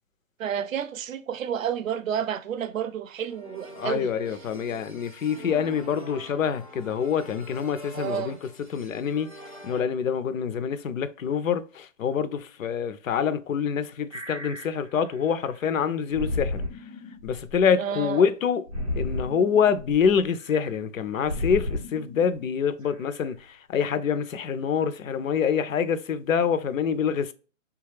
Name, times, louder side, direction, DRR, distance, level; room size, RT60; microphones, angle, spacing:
voice 1, 0.4-4.1 7.9-8.4 17.8-18.2, right 9 dB, 80° right, 0.5 m, -30 dB
sound 1, 3.2-9.8, equal, 30° left, 0.4 m, -45 dB
voice 2, 3.7-9.3 9.6-16.6 17.2-18.6 19.0-27.3, left 7 dB, 80° left, 0.5 m, -26 dB
sound 2, 14.1-15.6 16.1-18.2 18.7-20.7 21.2-22.3 22.8-23.3 23.9-24.0, left 2 dB, 30° right, 0.4 m, -34 dB
3.5 x 2.3 x 3.2 m
hypercardioid pair, 175°, 39 cm